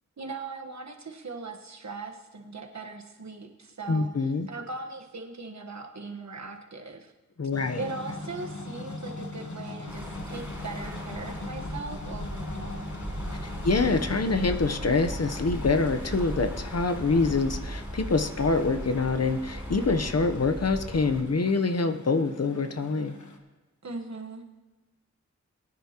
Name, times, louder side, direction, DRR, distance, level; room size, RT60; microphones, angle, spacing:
voice 1, 0.2-7.1 7.7-12.9 23.8-24.4, right 3 dB, 65° right, 4 dB, 1.3 m, -39 dB
voice 2, 3.9-4.5 7.4-7.8 13.6-23.1, left 3 dB, 55° left, 8 dB, 0.9 m, -25 dB
sound 1, 7.5-23.4, left 2 dB, 70° left, 1.3 m, -41 dB
sound 2, 9.9-21.2, right 1 dB, 10° right, 4.0 m, -37 dB
22.0 x 9.5 x 2.9 m, 1.2 s
wide cardioid pair, 50°, 30 cm